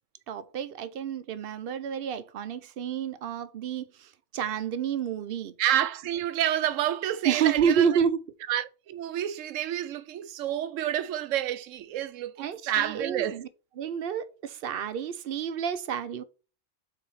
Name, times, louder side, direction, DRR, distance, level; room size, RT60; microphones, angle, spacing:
voice 1, 0.3-5.5 7.2-8.2 12.4-13.5 13.8-16.2, right 8 dB, 60° right, 0.7 m, -29 dB
voice 2, 5.6-7.9 8.5-13.4, right 11 dB, 85° right, 1.0 m, -29 dB
4.6 x 4.1 x 5.6 m
omnidirectional pair, 1.3 m